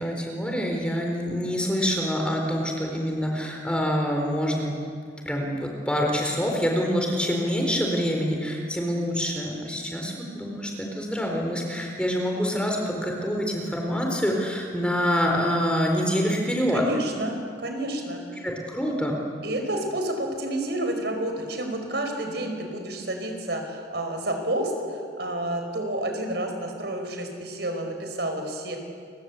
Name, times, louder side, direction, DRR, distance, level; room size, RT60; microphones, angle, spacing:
voice 1, 0.0-4.7 5.3-16.8 18.4-19.2, equal, 5° left, 1 dB, 4.1 m, -26 dB
voice 2, 16.7-18.4 19.4-28.8, right 1 dB, 65° right, 4 dB, 5.1 m, -30 dB
29.5 x 24.0 x 8.3 m, 2.2 s
head